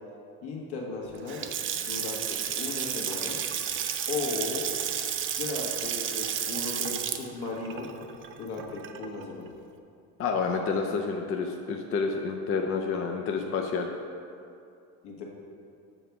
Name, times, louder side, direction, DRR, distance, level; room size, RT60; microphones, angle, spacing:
voice 1, 0.4-3.4 4.1-4.7 5.3-7.9 8.4-9.5 15.0-15.2, left 4 dB, 65° left, -2 dB, 1.6 m, -36 dB
Water tap faucet / Sink (filling or washing) / Splash splatter, 1.1-9.2, right 9 dB, 30° right, 0.4 m, -32 dB
voice 2, 10.2-13.9, left 5 dB, 35° left, 2 dB, 0.5 m, -29 dB
7.2 x 3.5 x 5.9 m, 2.5 s
supercardioid pair, 90°, 42 cm